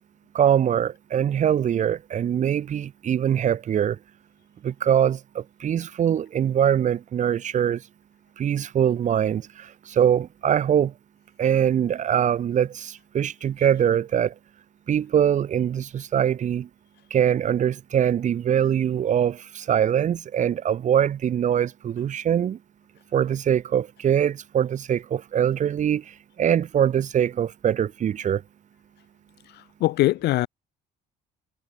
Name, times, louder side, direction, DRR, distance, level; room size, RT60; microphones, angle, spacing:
voice 1, 0.3-4.0 4.6-7.8 8.4-10.9 11.4-14.3 14.9-16.7 17.1-22.6 23.1-28.4, right 9 dB, 45° right, 1.2 m, -23 dB
voice 2, 29.5-30.5, left 17 dB, 80° left, 1.3 m, -22 dB
cardioid pair, 110°, 17 cm